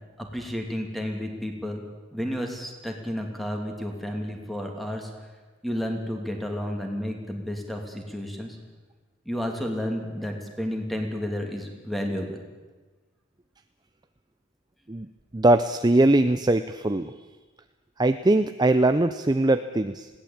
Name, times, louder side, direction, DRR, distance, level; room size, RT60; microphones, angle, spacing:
voice 1, 0.2-1.8 2.1-5.3 5.6-8.6 9.2-12.4, equal, ahead, 3 dB, 2.8 m, -31 dB
voice 2, 15.3-17.1 18.0-20.1, right 2 dB, 20° right, 10 dB, 0.6 m, -21 dB
20.5 x 17.0 x 8.8 m, 1.3 s
head